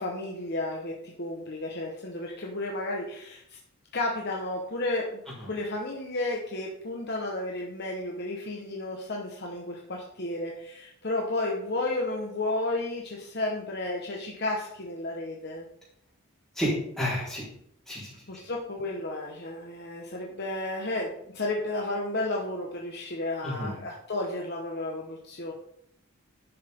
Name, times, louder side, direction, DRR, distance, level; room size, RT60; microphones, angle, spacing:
voice 1, 0.0-3.6 3.9-15.6 18.3-25.5, left 2 dB, 50° left, -1 dB, 1.2 m, -32 dB
voice 2, 16.6-17.4 17.9-18.1 23.4-23.7, equal, ahead, -8 dB, 4.2 m, -30 dB
11.0 x 6.9 x 3.7 m, 0.72 s
head